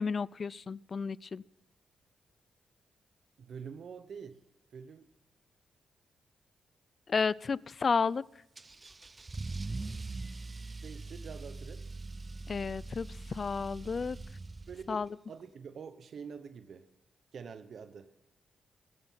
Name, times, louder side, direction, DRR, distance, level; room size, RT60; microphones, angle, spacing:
voice 1, 0.0-1.4 7.1-8.2 12.5-14.2 14.9-15.1, left 5 dB, 50° left, 22 dB, 0.5 m, -32 dB
voice 2, 3.4-4.4 4.7-5.1 10.8-11.8 14.7-16.9 17.3-18.1, right 6 dB, 65° right, 10 dB, 1.0 m, -46 dB
Car / Engine starting / Accelerating revving vroom, 8.6-15.1, right 3 dB, 30° right, 0.5 m, -42 dB
15.0 x 15.0 x 5.8 m, 0.86 s
cardioid pair, 65°, 0 cm